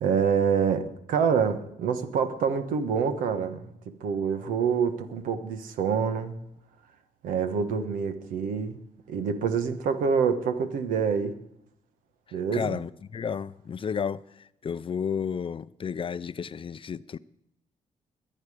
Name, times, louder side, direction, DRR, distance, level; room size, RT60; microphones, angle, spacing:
voice 1, 0.0-6.3 7.2-8.8 9.1-11.4 12.3-12.8, right 6 dB, 85° right, 1.2 m, -26 dB
voice 2, 12.5-17.2, left 7 dB, 40° left, 0.5 m, -32 dB
22.0 x 9.0 x 4.9 m
cardioid pair, 70°, 14 cm